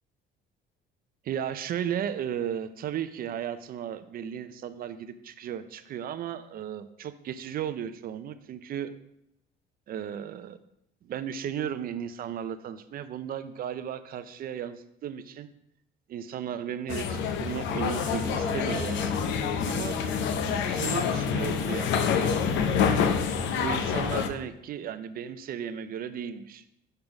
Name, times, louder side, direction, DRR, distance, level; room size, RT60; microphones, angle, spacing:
voice 1, 1.2-8.9 9.9-10.6 11.0-15.5 16.1-19.0 19.6-20.0 20.7-22.3 23.5-26.6, right 9 dB, 50° right, 12 dB, 0.5 m, -35 dB
sound 1, 16.9-24.3, left 6 dB, 70° left, 0.7 m, -27 dB
sound 2, 18.2-23.3, left 4 dB, 25° left, 0.6 m, -38 dB
6.6 x 3.7 x 5.8 m, 0.79 s
cardioid pair, 130°, 20 cm